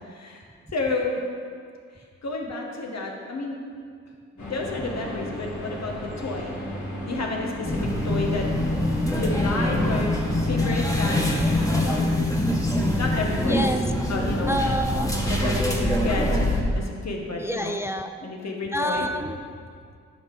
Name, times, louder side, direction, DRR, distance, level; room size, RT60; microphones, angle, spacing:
voice 1, 0.1-0.4 0.7-1.1 2.2-3.6 4.4-6.5 7.0-7.8 8.0-8.5 8.9-11.2 11.7-12.1 12.9-13.7 14.1-14.7 15.3-17.8 18.2-19.1, left 3 dB, 60° left, 0 dB, 1.4 m, -31 dB
sound 1, 4.4-11.9, left 1 dB, 80° left, 1.6 m, -35 dB
sound 2, 7.6-16.6, left 1 dB, 10° left, 1.4 m, -24 dB
voice 2, 13.5-13.8 14.5-15.1 17.4-18.1 18.7-19.4, equal, 10° right, 7 dB, 0.4 m, -27 dB
9.4 x 5.2 x 4.7 m, 2.2 s
cardioid pair, 45°, 29 cm